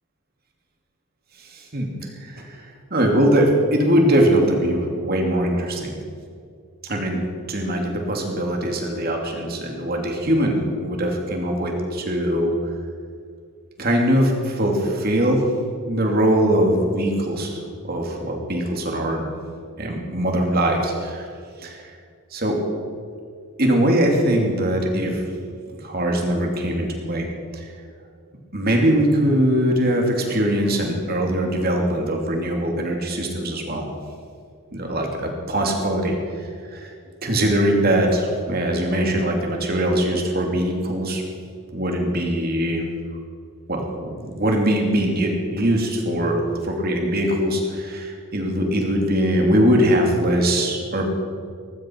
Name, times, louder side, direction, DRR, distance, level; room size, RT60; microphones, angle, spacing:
voice 1, 1.5-1.9 2.2-2.7 2.9-5.9 6.9-12.5 13.8-15.4 15.9-19.2 19.8-21.3 21.6-21.9 22.3-22.6 23.6-25.2 25.8-27.3 27.5-27.6 28.5-33.9 34.7-36.9 37.2-41.2 41.7-42.8 43.7-51.1, right 1 dB, 45° right, 1 dB, 2.7 m, -21 dB
19.5 x 15.0 x 4.7 m, 2.2 s
head